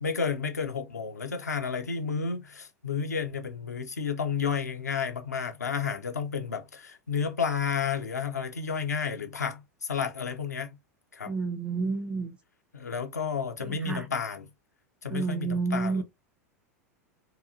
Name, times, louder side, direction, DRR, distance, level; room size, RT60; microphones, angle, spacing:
voice 1, 0.0-10.8 11.1-11.3 12.7-14.5 15.0-16.0, left 6 dB, 80° left, 0.6 m, -31 dB
voice 2, 11.2-12.4 13.6-14.1 15.1-16.0, right 4 dB, 10° right, 0.5 m, -30 dB
2.8 x 2.3 x 2.4 m
figure-of-eight pair, 90°, 9 cm